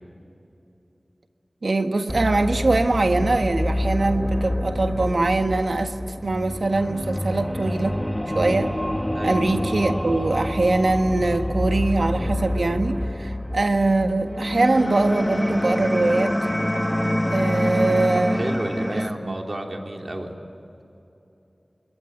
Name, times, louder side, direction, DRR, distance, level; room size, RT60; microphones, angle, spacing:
voice 1, 1.6-5.9 6.2-8.0 8.3-8.7 9.2-16.4 17.2-18.4 18.8-19.3, right 2 dB, 75° right, 6 dB, 1.6 m, -22 dB
sound 1, 2.1-19.1, left 1 dB, 10° left, 1.1 m, -26 dB
voice 2, 18.3-20.3, right 1 dB, 55° right, 2 dB, 3.3 m, -31 dB
26.5 x 22.0 x 9.3 m, 2.9 s
wide cardioid pair, 60°, 0 cm